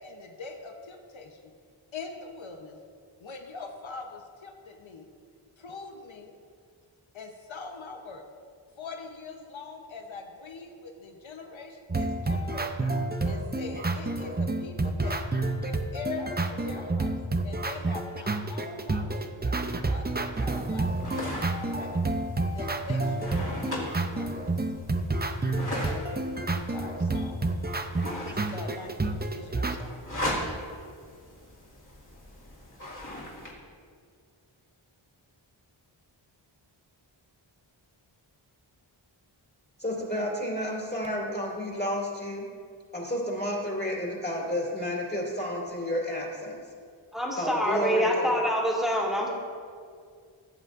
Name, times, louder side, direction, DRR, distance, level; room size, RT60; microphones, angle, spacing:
voice 1, 0.0-1.5 1.9-2.8 3.2-5.1 5.6-6.3 7.1-8.2 8.8-12.8 13.2-15.2 15.6-19.4 19.9-22.0 22.5-24.5 25.9-27.5 28.4-30.0, left 4 dB, 70° left, 3 dB, 1.0 m, -42 dB
sound 1, 11.9-29.8, right 2 dB, 20° right, 0.6 m, -29 dB
sound 2, 20.3-33.5, left 1 dB, 40° left, 2.5 m, -39 dB
voice 2, 39.8-42.4 42.9-46.6 47.4-48.4, equal, 20° left, -3 dB, 2.6 m, -31 dB
voice 3, 47.1-49.3, equal, ahead, -3 dB, 2.2 m, -26 dB
16.0 x 7.2 x 2.6 m, 2.2 s
wide cardioid pair, 45°, 49 cm